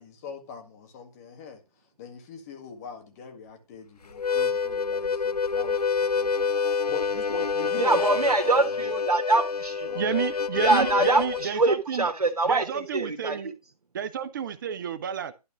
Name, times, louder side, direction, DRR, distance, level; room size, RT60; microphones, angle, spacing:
voice 1, 0.0-1.6 2.0-6.5 6.9-9.0 9.8-10.3, left 6 dB, 25° left, 1.9 m, -42 dB
Harmonica, 4.1-11.5, left 5 dB, 80° left, 0.8 m, -27 dB
voice 2, 7.8-9.9 10.6-13.4, right 3 dB, 80° right, 1.6 m, -24 dB
voice 3, 9.9-12.1 12.4-13.5 13.9-15.3, right 7 dB, 35° right, 0.9 m, -31 dB
11.5 x 4.0 x 6.1 m
figure-of-eight pair, 145°, 20 cm